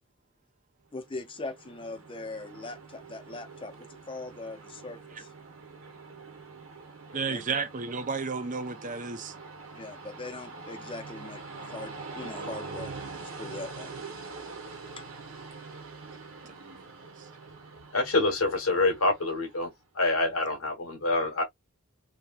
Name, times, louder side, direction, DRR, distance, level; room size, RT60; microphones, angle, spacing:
voice 1, 0.9-5.3 7.3-7.4 9.7-13.9 15.0-15.1, left 3 dB, 25° left, 0.6 m, -41 dB
Train, 1.0-19.7, right 3 dB, 70° right, 1.0 m, -44 dB
voice 2, 7.1-9.3 16.4-16.8, right 5 dB, 40° right, 0.6 m, -33 dB
voice 3, 17.9-19.7 19.9-21.4, left 2 dB, 80° left, 1.2 m, -26 dB
3.0 x 2.8 x 2.3 m
head